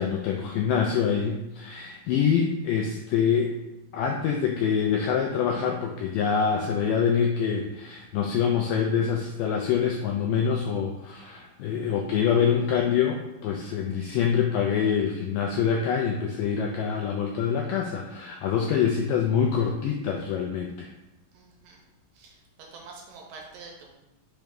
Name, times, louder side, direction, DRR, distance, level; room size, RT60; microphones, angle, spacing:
voice 1, 0.0-3.5 3.9-20.9, left 7 dB, 90° left, 1 dB, 1.9 m, -25 dB
voice 2, 21.3-21.8 22.2-22.4 22.7-23.9, right 4 dB, 80° right, 0 dB, 2.2 m, -46 dB
5.8 x 3.1 x 5.1 m, 0.96 s
omnidirectional pair, 4.4 m